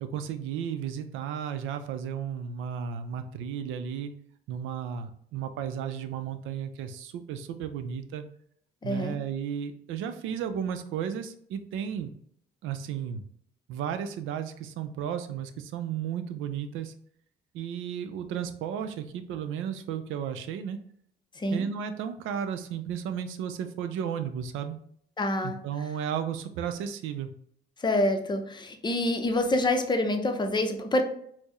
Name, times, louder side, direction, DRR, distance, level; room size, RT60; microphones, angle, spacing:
voice 1, 0.0-4.1 4.5-8.2 8.8-12.1 12.6-13.2 13.7-16.9 17.5-20.8 21.5-24.8 25.4-27.3, right 8 dB, 90° right, 9 dB, 0.4 m, -34 dB
voice 2, 8.8-9.2 21.3-21.7 25.2-25.6 27.8-31.0, left 1 dB, 20° left, 6 dB, 0.5 m, -27 dB
4.3 x 2.0 x 3.0 m, 0.65 s
cardioid pair, 90°, 20 cm